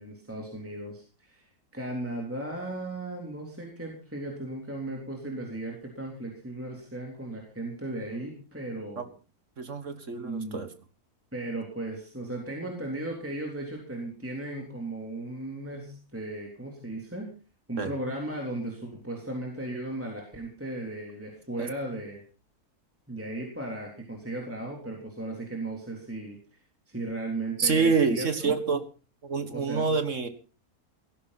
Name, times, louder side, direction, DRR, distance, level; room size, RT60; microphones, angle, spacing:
voice 1, 0.0-9.1 10.2-10.6 11.3-17.3 17.7-22.2 23.1-26.6 26.9-28.5 29.5-30.0, right 2 dB, 10° right, 0 dB, 3.6 m, -36 dB
voice 2, 9.6-10.7 17.8-17.9 21.6-21.7 27.6-28.8 29.2-30.3, right 4 dB, 55° right, 9 dB, 1.9 m, -26 dB
17.0 x 15.5 x 4.2 m, 0.35 s
omnidirectional pair, 1.6 m